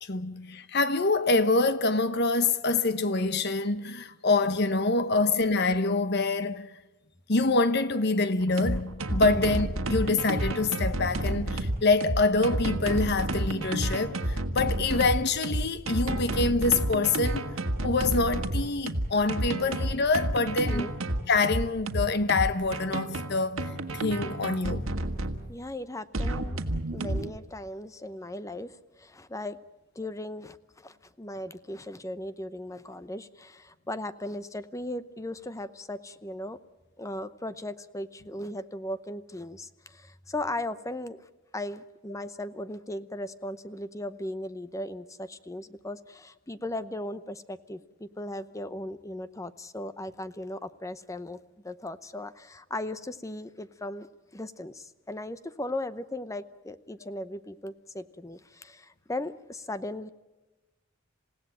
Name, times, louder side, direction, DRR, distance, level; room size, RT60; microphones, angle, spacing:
voice 1, 0.0-6.7 7.3-17.4 17.8-20.9 21.3-24.8, left 3 dB, 55° left, 1.0 m, -26 dB
sound 1, 8.4-25.4 26.1-27.3, right 1 dB, 80° right, 1.7 m, -30 dB
voice 2, 25.5-26.6 26.9-29.6 30.0-36.6 37.0-41.2 41.5-51.4 51.6-60.1, left 1 dB, 15° left, 0.7 m, -37 dB
28.0 x 16.5 x 9.0 m
head